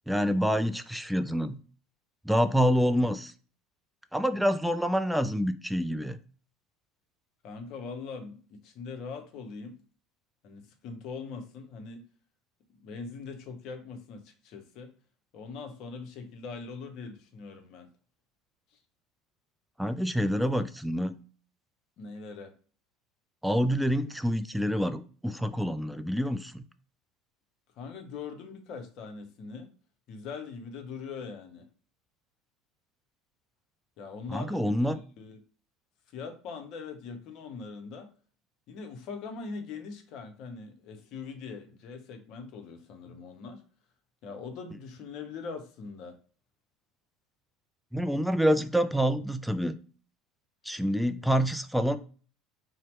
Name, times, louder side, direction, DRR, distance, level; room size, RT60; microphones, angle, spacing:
voice 1, 0.1-1.6 2.3-3.3 4.1-6.2 19.8-21.1 23.4-26.6 34.3-35.0 47.9-49.8 50.7-52.0, equal, ahead, 0.3 m, -27 dB
voice 2, 7.4-9.8 10.4-12.1 12.8-14.9 15.3-17.9 18.7-18.8 20.2-20.3 22.0-22.5 27.8-29.7 30.1-31.7 34.0-35.4 36.1-38.1 38.7-43.6 44.2-46.2, left 5 dB, 50° left, 0.6 m, -42 dB
2.7 x 2.0 x 3.1 m
figure-of-eight pair, 70°, 0 cm